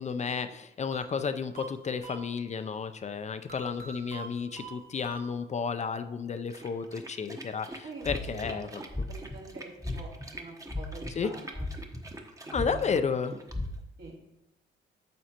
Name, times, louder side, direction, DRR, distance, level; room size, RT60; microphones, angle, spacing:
voice 1, 0.0-8.7 11.2-11.3 12.5-13.4, left 5 dB, 35° left, 10 dB, 0.5 m, -32 dB
sound 1, 0.9-2.7 3.5-5.8, right 4 dB, 45° right, 1.9 m, -46 dB
sound 2, 6.5-13.8, right 1 dB, 15° right, 1.0 m, -46 dB
voice 2, 7.8-11.7 12.4-13.1 14.0-14.2, right 2 dB, 70° right, -5 dB, 3.2 m, -46 dB
sound 3, 8.0-8.5 8.9-9.3 9.8-10.2 10.7-11.1 11.5-12.2 12.5-13.0 13.5-13.6, left 2 dB, 5° left, 0.9 m, -34 dB
9.3 x 6.4 x 2.9 m, 0.88 s
cardioid pair, 90°, 20 cm